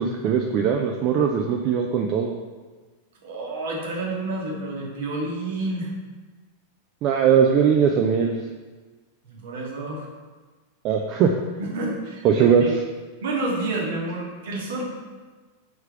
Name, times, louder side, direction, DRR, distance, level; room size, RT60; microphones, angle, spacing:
voice 1, 0.0-2.4 7.0-8.3 10.8-11.3 12.2-12.6, right 7 dB, 40° right, 2 dB, 0.3 m, -20 dB
voice 2, 3.2-5.9 9.3-10.1 11.6-12.7 13.2-14.9, right 2 dB, 55° right, -2 dB, 1.0 m, -29 dB
3.4 x 3.2 x 4.8 m, 1.3 s
figure-of-eight pair, 90°, 0 cm